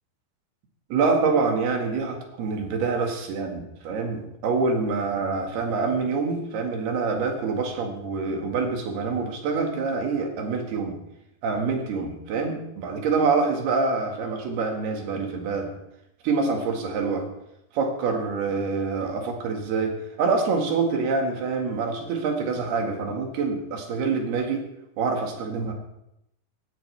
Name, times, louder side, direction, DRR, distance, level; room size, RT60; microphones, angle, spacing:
voice 1, 0.9-11.0 11.4-15.7 16.2-17.3 17.7-24.7 25.0-25.7, right 4 dB, 75° right, 2 dB, 3.8 m, -26 dB
18.0 x 14.5 x 3.4 m, 0.82 s
omnidirectional pair, 4.6 m